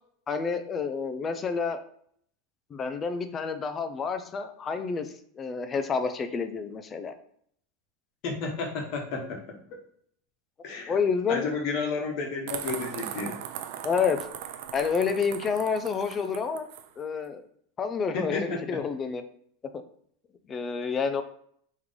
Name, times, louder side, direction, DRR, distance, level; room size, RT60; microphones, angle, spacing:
voice 1, 0.3-1.8 2.7-7.1 10.9-11.4 13.8-14.2 14.7-16.7 17.0-17.4 17.8-19.2 20.5-21.2, left 5 dB, 25° left, 9 dB, 0.4 m, -29 dB
voice 2, 8.2-9.4 10.6-11.0 11.3-13.4 18.1-18.8, left 4 dB, 50° left, 1 dB, 1.2 m, -31 dB
sound 1, 12.5-16.9, right 10 dB, 65° right, 0.4 m, -39 dB
3.7 x 3.1 x 3.6 m, 0.65 s
supercardioid pair, 125°, 0 cm